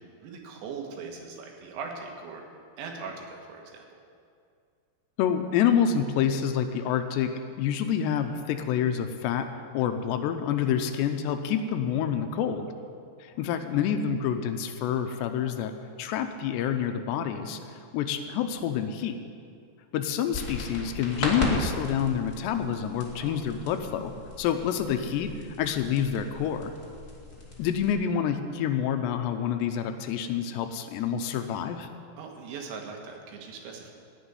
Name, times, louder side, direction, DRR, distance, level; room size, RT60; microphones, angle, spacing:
voice 1, 0.0-2.4 2.8-3.8 23.1-23.4 24.6-24.8 32.2-33.9, right 5 dB, 85° right, 2 dB, 3.8 m, -40 dB
voice 2, 5.2-9.5 9.7-12.7 13.2-15.7 16.0-17.6 17.9-19.2 19.9-24.1 24.4-26.7 27.6-31.9, left 8 dB, 80° left, 7 dB, 2.8 m, -27 dB
sound 1, 20.3-27.9, left 2 dB, 30° left, 1.2 m, -36 dB
16.5 x 6.2 x 9.6 m, 2.3 s
omnidirectional pair, 5.1 m